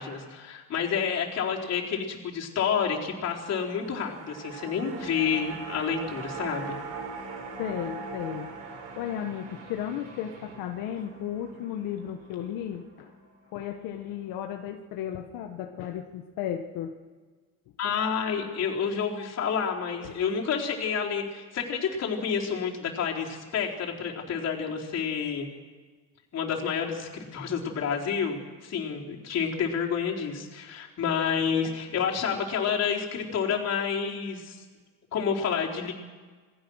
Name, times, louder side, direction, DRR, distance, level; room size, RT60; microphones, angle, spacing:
voice 1, 0.0-6.7 17.8-25.5 26.3-34.6 35.1-35.9, left 6 dB, 45° left, -1 dB, 4.2 m, -29 dB
sound 1, 3.2-13.6 14.0-14.1, right 4 dB, 90° right, 5.1 m, -41 dB
voice 2, 7.6-8.5 9.0-13.1 13.5-17.0 20.0-20.2 31.6-31.8, left 10 dB, 80° left, 4 dB, 1.5 m, -34 dB
28.0 x 19.5 x 6.4 m, 1.4 s
cardioid pair, 145°, 35 cm